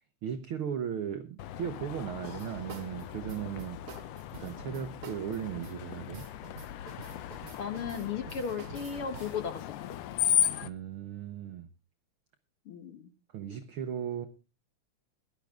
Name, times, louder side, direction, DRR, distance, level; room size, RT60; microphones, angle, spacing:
voice 1, 0.2-3.8 4.4-6.3 10.6-11.7 13.3-14.3, right 9 dB, 70° right, 1.2 m, -37 dB
Screech, 1.4-10.7, left 10 dB, 75° left, 1.5 m, -36 dB
sound 1, 2.2-9.5, right 5 dB, 55° right, 1.8 m, -48 dB
voice 2, 7.6-9.7 12.7-13.1, left 6 dB, 55° left, 1.7 m, -35 dB
16.5 x 12.0 x 3.6 m
omnidirectional pair, 3.6 m